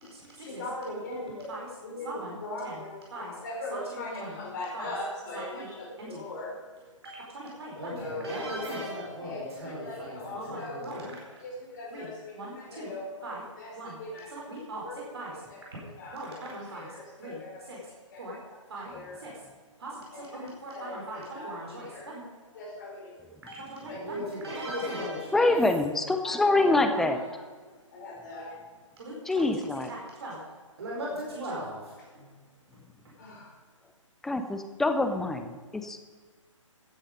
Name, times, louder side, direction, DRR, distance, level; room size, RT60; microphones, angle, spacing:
voice 1, 0.4-1.5 1.8-6.6 8.0-8.3 9.2-10.8 11.4-14.4 14.7-17.7 18.1-18.3 18.8-19.2 20.1-22.1 22.5-23.5 23.9-24.2 25.3-25.6 26.2-27.4 27.9-28.7 33.2-33.5, left 1 dB, 35° left, -1 dB, 4.9 m, -40 dB
voice 2, 2.0-2.4 2.6-2.8 3.1-3.3 3.7-4.3 4.7-4.9 5.3-5.7 6.0-6.2 7.0-11.4 11.9-12.1 12.3-12.9 13.2-13.4 13.7-14.0 14.3-14.8 15.1-15.3 16.1-16.9 17.2-17.4 17.7-17.8 18.2-18.4 18.7-18.9 19.2-19.3 19.8-22.2 23.5-25.5 26.5-27.1 29.0-29.1 29.4-29.5 29.9-30.4 30.8-32.3, right 1 dB, 50° right, -3 dB, 4.6 m, -38 dB
voice 3, 25.3-27.2 29.3-29.9 34.2-36.0, left 2 dB, ahead, 7 dB, 0.4 m, -25 dB
15.0 x 9.8 x 5.2 m, 1.5 s
figure-of-eight pair, 135°, 17 cm